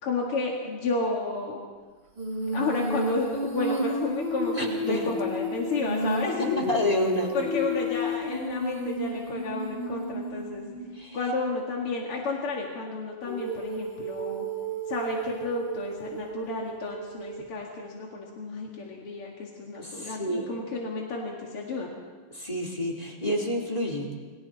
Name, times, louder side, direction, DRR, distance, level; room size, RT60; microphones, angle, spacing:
voice 1, 0.0-1.6 2.5-6.8 7.3-10.7 11.1-14.5 14.9-21.9, left 3 dB, 85° left, -2 dB, 3.2 m, -31 dB
Female singing, 2.2-11.0 13.2-17.5, equal, 60° right, 4.6 m, -32 dB
voice 2, 4.5-5.2 6.4-7.3 10.9-11.2 19.7-20.5 22.3-24.2, equal, 15° left, -2 dB, 3.7 m, -29 dB
29.5 x 23.5 x 4.3 m, 1.5 s
omnidirectional pair, 2.4 m